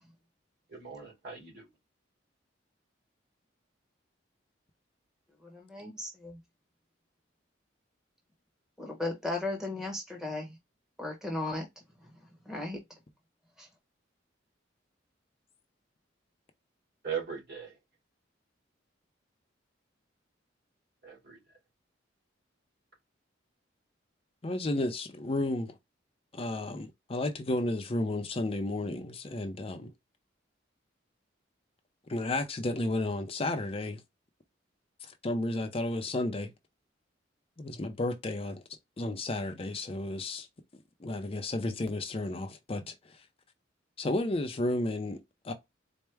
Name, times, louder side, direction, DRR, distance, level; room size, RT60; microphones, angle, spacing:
voice 1, 0.7-1.7 17.0-17.8 21.0-21.4, right 7 dB, 55° right, 2.5 m, -39 dB
voice 2, 5.4-6.4 8.8-10.6 11.0-11.7 12.5-12.8 13.6-13.7, left 2 dB, 5° right, 0.9 m, -36 dB
voice 3, 24.4-25.8 26.3-29.9 32.1-34.0 35.0-36.5 37.6-38.6 39.0-40.5 41.0-43.2 44.0-45.5, left 2 dB, 30° left, 0.5 m, -32 dB
4.4 x 2.1 x 3.3 m
head